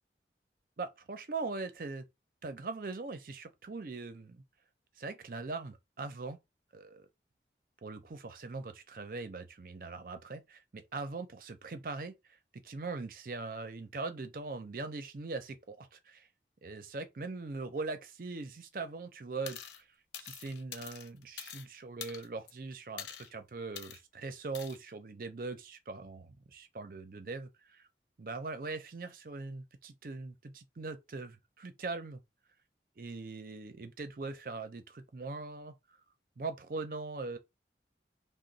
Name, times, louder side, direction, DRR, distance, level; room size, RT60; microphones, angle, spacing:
voice 1, 0.8-2.1 2.4-4.4 5.0-6.4 6.7-7.1 7.8-12.1 12.5-16.3 16.6-19.9 20.2-27.9 28.2-32.2 33.0-36.0 36.4-37.4, right 3 dB, 50° right, 0.5 m, -41 dB
sound 1, 19.5-19.8 20.1-21.7 22.0-22.5 23.0-23.3 23.8-24.0 24.5-24.8, left 9 dB, 85° left, 0.5 m, -45 dB
3.0 x 2.1 x 3.9 m
head